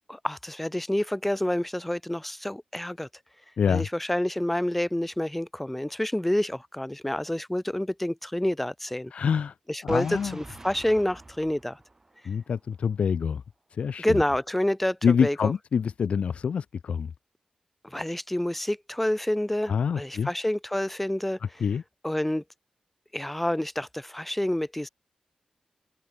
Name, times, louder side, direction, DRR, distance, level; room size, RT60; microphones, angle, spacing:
voice 1, 0.1-3.1 3.7-9.1 9.7-11.8 14.0-15.5 17.8-21.4 22.0-22.4 23.1-24.9, left 1 dB, 5° left, 0.6 m, -28 dB
voice 2, 3.6-3.9 9.1-9.5 9.8-10.4 12.2-13.4 13.7-14.2 15.0-17.1 19.7-20.3 21.4-21.8, left 6 dB, 65° left, 0.5 m, -26 dB
Boom, 9.9-12.7, right 2 dB, 20° right, 3.6 m, -45 dB
open air
wide cardioid pair, 160°, 2 cm